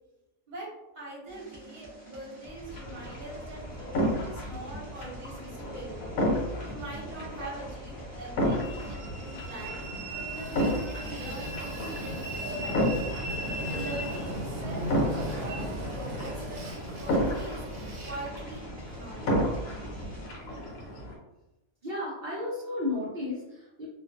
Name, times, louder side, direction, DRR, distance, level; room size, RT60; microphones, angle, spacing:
voice 1, 0.9-6.0 6.6-9.8 10.1-12.8 13.3-16.6 17.0-17.7 18.0-18.6 18.9-19.4, right 2 dB, 40° right, -5 dB, 0.9 m, -43 dB
sound 1, 1.3-20.3, right 1 dB, 10° left, 0.5 m, -46 dB
sound 2, 2.7-21.2, equal, 80° left, 1.0 m, -33 dB
Train, 8.6-21.0, equal, 75° right, 1.0 m, -37 dB
voice 2, 21.8-23.9, left 2 dB, 55° right, -7 dB, 0.5 m, -33 dB
2.4 x 2.3 x 2.3 m, 0.95 s
omnidirectional pair, 1.4 m